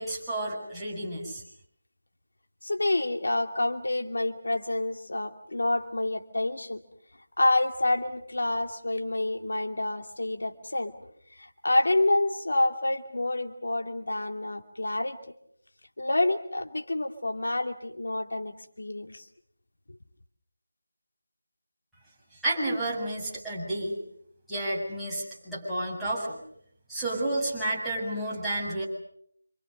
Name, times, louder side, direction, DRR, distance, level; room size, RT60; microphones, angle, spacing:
voice 1, 0.0-1.4 22.4-23.9 24.5-26.4 26.9-28.9, right 1 dB, ahead, -10 dB, 7.2 m, -31 dB
voice 2, 2.6-6.8 7.4-10.9 11.3-15.2 16.0-19.2, left 2 dB, 70° left, 5 dB, 2.5 m, -28 dB
28.5 x 27.5 x 6.6 m, 0.69 s
figure-of-eight pair, 165°, 0 cm